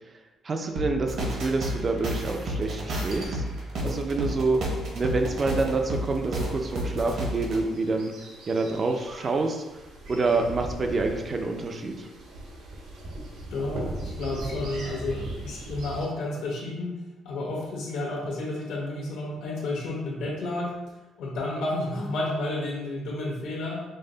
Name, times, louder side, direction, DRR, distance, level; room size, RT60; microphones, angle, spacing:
voice 1, 0.4-3.4 3.8-4.6 5.0-8.1 8.5-9.6 10.1-12.1, right 3 dB, 25° right, 4 dB, 0.4 m, -27 dB
sound 1, 0.8-7.6, equal, 55° right, 0.9 m, -31 dB
sound 2, 5.1-16.1, right 1 dB, 85° right, 1.2 m, -40 dB
voice 2, 13.5-16.9 17.2-20.7 21.2-23.8, left 2 dB, 80° left, -2 dB, 1.2 m, -31 dB
5.3 x 2.1 x 3.8 m, 1.1 s
cardioid pair, 170°, 0 cm